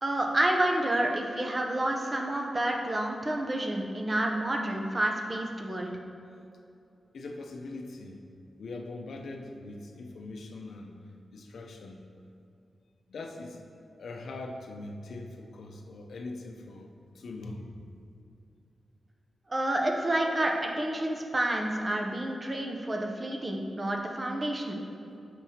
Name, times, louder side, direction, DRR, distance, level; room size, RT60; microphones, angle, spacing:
voice 1, 0.0-5.9 19.5-24.9, right 1 dB, 20° right, 1 dB, 0.6 m, -29 dB
voice 2, 7.1-8.2 8.6-11.0 11.3-12.1 13.1-13.6 14.0-17.7, left 2 dB, 75° left, 2 dB, 0.5 m, -41 dB
7.3 x 5.9 x 2.8 m, 2.6 s
wide cardioid pair, 160°, 0 cm